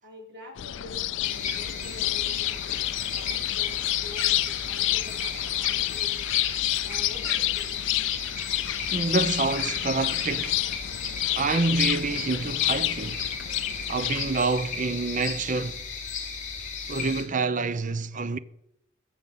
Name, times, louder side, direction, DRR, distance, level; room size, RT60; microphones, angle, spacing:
voice 1, 0.0-2.8 3.1-3.7 4.0-5.2 5.5-6.2 6.8-7.7, left 1 dB, 60° right, 4.8 m, -46 dB
sound 1, 0.6-14.4, left 15 dB, 65° left, 0.4 m, -29 dB
sound 2, 1.2-17.2, left 5 dB, 40° left, 3.1 m, -35 dB
voice 2, 8.9-10.7 11.4-13.2 13.9-15.8 16.9-18.4, right 3 dB, 40° right, 0.6 m, -27 dB
20.0 x 7.8 x 5.7 m
head